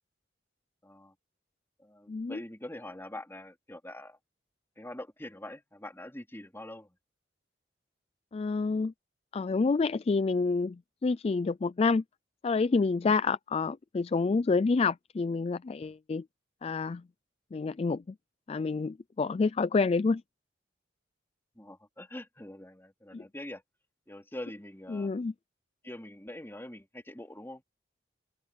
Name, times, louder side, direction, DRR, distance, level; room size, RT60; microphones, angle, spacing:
voice 1, 0.8-1.1 1.8-4.2 4.8-7.0 21.5-23.6 24.1-25.1 25.8-27.6, left 1 dB, 15° left, 3.3 m, -44 dB
voice 2, 2.1-2.4 8.3-8.9 9.3-12.0 12.4-16.2 16.6-17.0 17.5-18.0 18.5-20.2 23.1-23.2 24.9-25.3, left 4 dB, 35° left, 0.3 m, -28 dB
open air
head